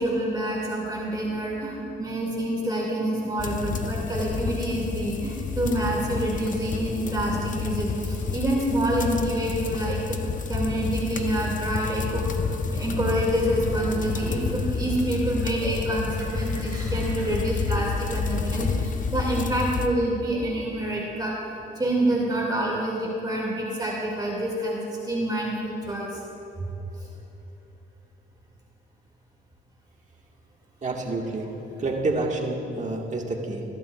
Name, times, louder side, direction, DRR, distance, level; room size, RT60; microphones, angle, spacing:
voice 1, 0.0-21.3 21.7-26.2 26.6-26.7 31.2-31.3, right 1 dB, 20° right, -4 dB, 2.3 m, -27 dB
sound 1, 3.4-19.9, left 5 dB, 40° left, 0.7 m, -29 dB
voice 2, 30.8-31.5 31.8-33.6, right 2 dB, 40° right, 0 dB, 1.7 m, -28 dB
21.5 x 11.0 x 2.4 m, 2.9 s
cardioid pair, 90°, 20 cm